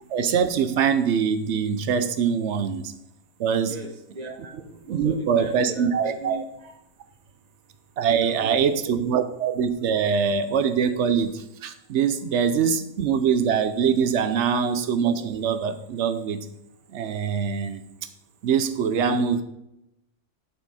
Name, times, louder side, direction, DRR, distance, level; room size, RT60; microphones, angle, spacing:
voice 1, 0.1-2.9 3.4-3.8 4.9-6.4 8.0-16.5 16.9-17.8 18.4-19.4, right 7 dB, 65° right, 11 dB, 0.8 m, -23 dB
voice 2, 3.7-6.7 8.1-8.9 14.3-14.4, right 3 dB, 30° right, 3 dB, 1.1 m, -39 dB
8.8 x 5.5 x 4.1 m, 0.87 s
omnidirectional pair, 1.6 m